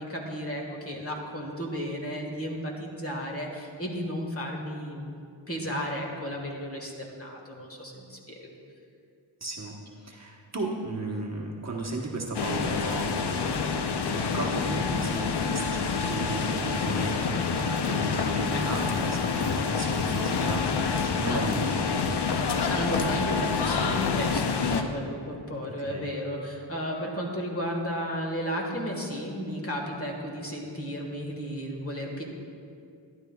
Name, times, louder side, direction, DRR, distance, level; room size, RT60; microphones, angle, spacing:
voice 1, 0.0-8.5 22.7-32.2, equal, 30° left, 0 dB, 1.5 m, -34 dB
voice 2, 9.4-9.8 10.0-21.8 25.9-26.0, right 2 dB, 35° right, -1 dB, 1.1 m, -35 dB
sound 1, 12.3-24.8, left 5 dB, 60° left, 0.7 m, -27 dB
12.0 x 10.5 x 2.3 m, 2.4 s
cardioid pair, 70°, 47 cm